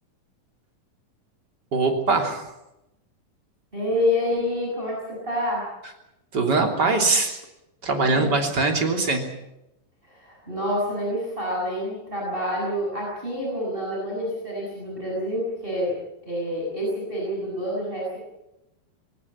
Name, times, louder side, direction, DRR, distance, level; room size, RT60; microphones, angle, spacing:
voice 1, 1.7-2.5 6.3-7.4 7.8-9.3, right 3 dB, 30° right, 3 dB, 3.4 m, -22 dB
voice 2, 3.7-5.7 8.0-8.3 10.1-15.9 16.2-18.2, left 1 dB, 15° right, -3 dB, 7.1 m, -27 dB
21.0 x 18.5 x 8.8 m, 0.90 s
omnidirectional pair, 3.8 m